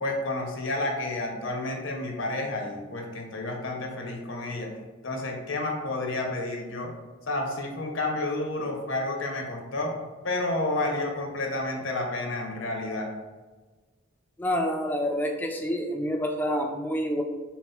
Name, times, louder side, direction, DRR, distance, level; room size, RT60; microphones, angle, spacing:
voice 1, 0.0-4.7 5.0-6.9 7.3-10.0 10.2-13.1, left 2 dB, 75° left, 2 dB, 0.8 m, -30 dB
voice 2, 14.4-17.2, equal, 10° left, 2 dB, 0.3 m, -28 dB
4.1 x 2.1 x 4.3 m, 1.3 s
head